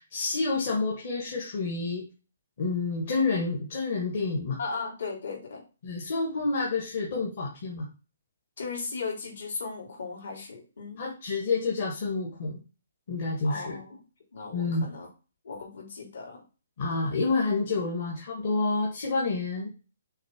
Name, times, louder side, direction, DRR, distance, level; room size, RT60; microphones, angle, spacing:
voice 1, 0.0-2.0 2.6-4.6 5.8-7.9 11.0-12.6 13.1-13.8 14.5-14.9 16.8-19.7, left 3 dB, 35° left, -2 dB, 1.4 m, -29 dB
voice 2, 4.6-5.6 8.6-11.0 13.4-14.0 14.3-15.1 15.4-16.4, left 4 dB, 55° left, 0 dB, 3.3 m, -36 dB
6.4 x 3.6 x 6.0 m, 0.32 s
hypercardioid pair, 180°, 0 cm